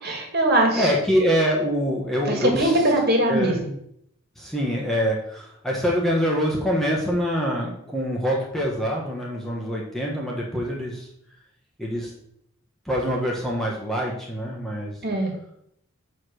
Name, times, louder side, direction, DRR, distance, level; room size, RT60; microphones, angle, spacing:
voice 1, 0.0-0.9 2.3-3.7 15.0-15.3, right 1 dB, 45° right, 1 dB, 2.0 m, -21 dB
voice 2, 0.7-2.7 3.3-3.5 4.4-11.1 11.8-12.1 12.8-14.9, equal, ahead, -3 dB, 1.3 m, -25 dB
7.2 x 5.0 x 6.2 m, 0.73 s
head